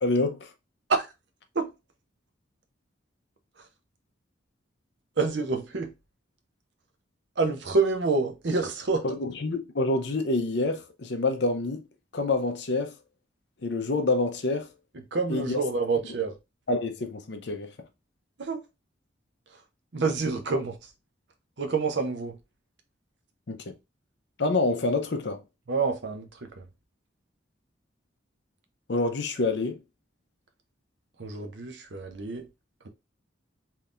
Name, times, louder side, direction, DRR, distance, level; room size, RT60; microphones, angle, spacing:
voice 1, 0.0-0.5 9.0-11.8 12.1-12.9 13.6-14.7 15.3-15.6 16.7-17.7 23.5-23.8 24.4-25.4 28.9-29.8, left 2 dB, 60° left, 0.6 m, -27 dB
voice 2, 5.2-5.9 7.4-9.0 15.1-16.3 18.4-18.6 19.9-20.8 21.6-22.4 25.7-26.6 31.2-32.4, right 4 dB, 65° right, 0.7 m, -27 dB
3.5 x 2.7 x 2.4 m
head